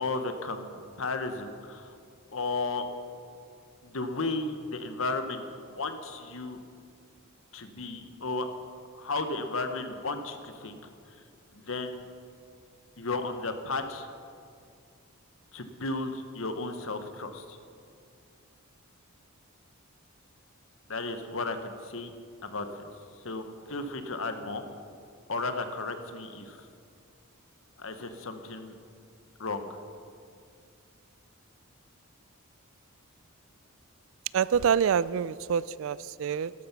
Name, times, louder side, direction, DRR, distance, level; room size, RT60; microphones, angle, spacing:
voice 1, 0.0-2.0 2.3-2.8 3.8-5.4 5.7-6.6 7.5-8.5 8.9-10.9 11.5-12.0 13.0-14.1 15.5-17.6 20.9-22.1 22.4-22.9 23.2-24.6 25.3-26.7 27.8-28.8 29.4-29.7, left 3 dB, 60° left, 8 dB, 1.0 m, -34 dB
voice 2, 34.3-36.5, right 7 dB, 60° right, 18 dB, 0.3 m, -26 dB
12.5 x 12.5 x 6.0 m, 2.4 s
head